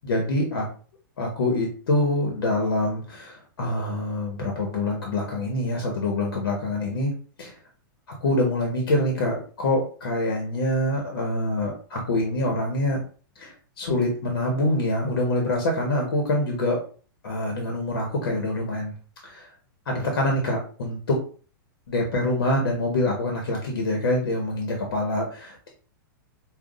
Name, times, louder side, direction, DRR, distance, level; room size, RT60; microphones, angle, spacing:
voice 1, 0.0-0.6 1.2-7.1 7.4-7.5 8.2-13.0 13.4-16.8 17.2-18.9 19.2-19.5 19.9-21.2 21.9-25.7, left 1 dB, 90° left, 1 dB, 1.2 m, -25 dB
5.6 x 2.4 x 2.5 m, 0.40 s
supercardioid pair, 155°, 12 cm